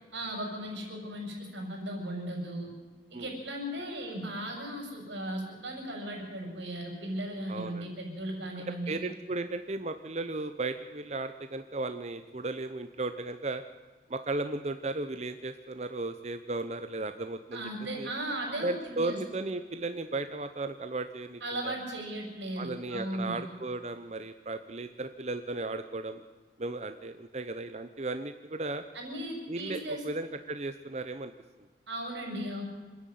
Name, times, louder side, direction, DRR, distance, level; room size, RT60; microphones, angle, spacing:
voice 1, 0.1-2.7 3.1-8.9 17.5-19.2 21.4-23.4 28.9-30.0 31.9-32.7, right 1 dB, 90° right, 1 dB, 6.6 m, -37 dB
voice 2, 7.5-7.9 8.9-13.6 14.1-17.7 18.0-18.1 18.6-21.7 22.6-26.2 26.6-28.8 29.5-31.3, right 2 dB, 35° right, 9 dB, 0.8 m, -35 dB
26.5 x 10.5 x 9.3 m, 1.3 s
head